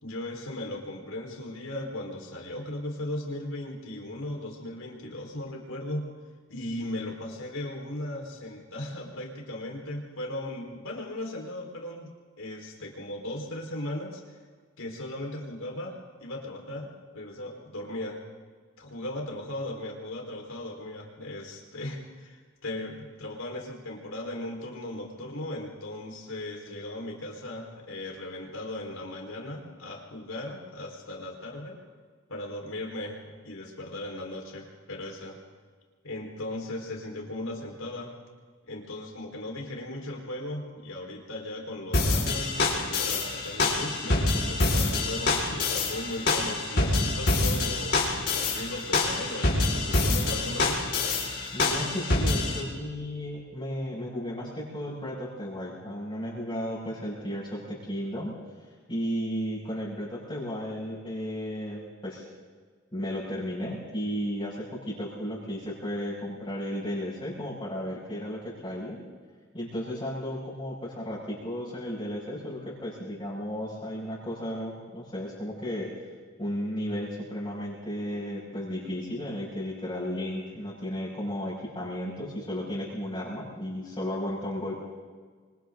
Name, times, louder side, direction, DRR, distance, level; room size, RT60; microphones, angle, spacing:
voice 1, 0.0-6.1 6.5-12.1 12.4-14.4 14.8-18.2 18.8-31.8 32.3-35.4 36.0-38.1 38.7-50.8, left 1 dB, 85° left, 0 dB, 4.6 m, -37 dB
sound 1, 41.9-52.6, left 2 dB, 55° left, 5.4 m, -26 dB
voice 2, 51.5-58.3 58.9-62.2 62.9-69.0 69.5-75.9 76.4-84.8, equal, 25° left, -8 dB, 6.5 m, -34 dB
27.5 x 25.5 x 3.9 m, 1.5 s
head